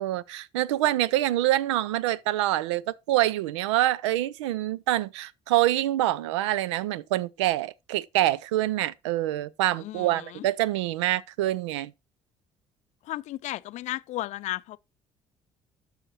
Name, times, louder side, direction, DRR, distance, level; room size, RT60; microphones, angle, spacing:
voice 1, 0.0-11.9, right 14 dB, 70° right, 0.5 m, -26 dB
sound 1, 0.7-3.5, left 9 dB, 55° right, 5.7 m, -59 dB
voice 2, 9.8-10.5 13.0-14.8, left 15 dB, 50° left, 0.5 m, -34 dB
11.5 x 6.4 x 3.1 m
figure-of-eight pair, 50°, 15 cm